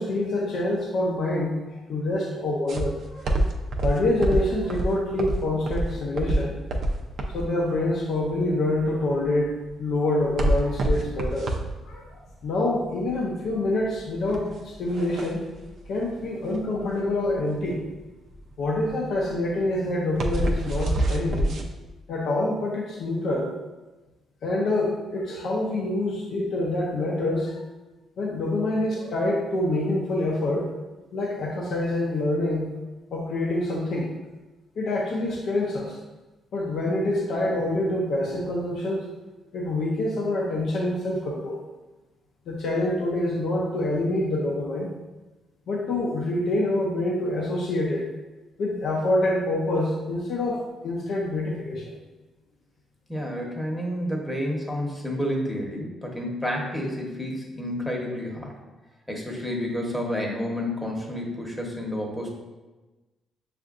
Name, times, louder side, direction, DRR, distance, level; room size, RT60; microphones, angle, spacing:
voice 1, 0.0-3.4 3.8-6.6 7.3-11.5 11.9-15.4 15.9-17.8 18.6-21.5 22.1-23.5 24.4-27.6 28.2-30.7 31.1-32.8 33.1-34.1 34.8-36.0 36.5-39.1 39.5-41.6 42.5-44.9 45.7-48.1 48.6-51.9, left 1 dB, 70° left, -3 dB, 0.6 m, -26 dB
sound 1, 2.7-21.6, right 1 dB, 65° right, 0.5 m, -27 dB
voice 2, 53.1-58.5 59.1-62.3, equal, 5° left, -1 dB, 1.0 m, -30 dB
6.4 x 2.5 x 2.5 m, 1.2 s
cardioid pair, 90°, 0 cm